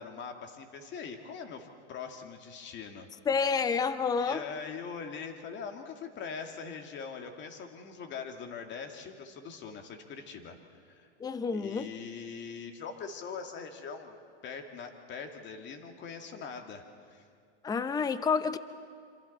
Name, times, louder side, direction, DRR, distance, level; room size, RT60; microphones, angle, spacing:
voice 1, 0.0-3.1 4.2-10.6 10.8-11.1 11.5-17.3, left 5 dB, 35° left, 4 dB, 2.3 m, -42 dB
voice 2, 3.3-4.4 11.2-11.9 17.6-18.6, left 5 dB, 10° left, 12 dB, 0.6 m, -29 dB
27.0 x 26.0 x 4.3 m, 2.3 s
supercardioid pair, 130°, 33 cm